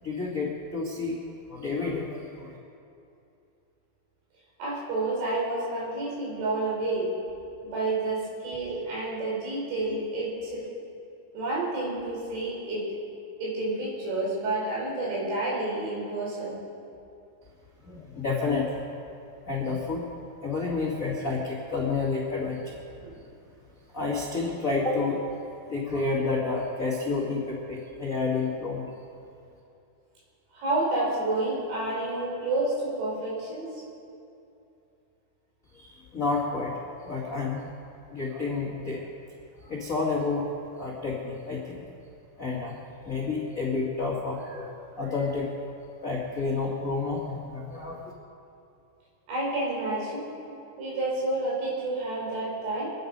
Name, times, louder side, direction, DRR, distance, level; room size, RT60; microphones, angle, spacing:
voice 1, 0.0-1.1 1.5-2.5 17.8-18.8 19.5-20.0 20.4-22.8 23.9-25.2 25.7-28.8 35.7-36.7 37.0-37.7 38.1-39.0 39.6-40.5 40.8-41.8 42.4-42.8 43.0-45.5 46.0-48.1, left 4 dB, 75° left, -5 dB, 0.7 m, -30 dB
voice 2, 4.6-7.1 7.6-10.7 11.3-13.0 13.4-16.6 23.0-23.2 30.5-33.7 49.3-50.3 50.8-52.9, right 2 dB, 90° right, -5 dB, 7.1 m, -29 dB
25.0 x 10.0 x 5.4 m, 2.7 s
omnidirectional pair, 5.2 m